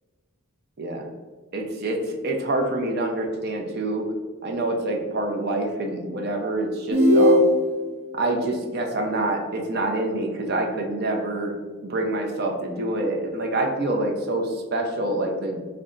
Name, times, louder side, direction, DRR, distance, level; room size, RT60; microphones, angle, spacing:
voice 1, 0.8-1.1 1.5-4.1 4.4-7.4 8.1-11.5 11.8-15.6, right 2 dB, 50° right, 2 dB, 0.6 m, -26 dB
sound 1, 6.9-7.9, left 1 dB, 65° right, 0.9 m, -17 dB
4.0 x 2.2 x 3.7 m, 1.4 s
head